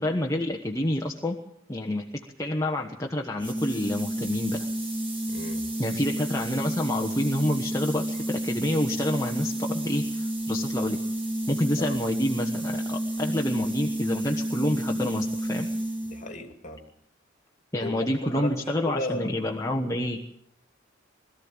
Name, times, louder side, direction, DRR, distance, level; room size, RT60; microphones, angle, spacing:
voice 1, 0.0-1.4 1.7-2.0 2.4-4.7 5.8-11.0 11.5-15.7 17.7-20.2, left 1 dB, 15° left, 0 dB, 1.2 m, -28 dB
sound 1, 3.4-16.3, right 1 dB, 30° right, 4.8 m, -30 dB
voice 2, 5.3-5.7 11.8-12.0 16.0-16.8 17.8-19.3, left 1 dB, 35° left, 6 dB, 2.5 m, -35 dB
22.0 x 13.5 x 8.8 m, 0.69 s
head